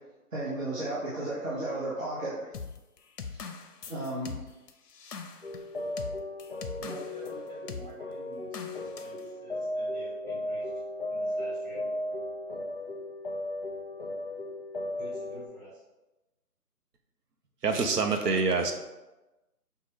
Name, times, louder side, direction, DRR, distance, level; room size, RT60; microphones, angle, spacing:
voice 1, 0.3-2.5 3.9-4.4, right 1 dB, 55° right, -9 dB, 1.2 m, -33 dB
sound 1, 2.5-7.3 7.7-7.9 8.5-9.2, left 5 dB, 90° left, 0.6 m, -41 dB
sound 2, 5.4-15.5, left 1 dB, 40° left, 0.5 m, -36 dB
voice 2, 6.8-10.7 11.1-11.8 15.0-15.8, right 1 dB, 10° right, -18 dB, 1.0 m, -49 dB
voice 3, 17.6-18.7, right 4 dB, 85° right, 5 dB, 0.8 m, -26 dB
5.5 x 2.2 x 3.1 m, 1.0 s
hypercardioid pair, 170°, 46 cm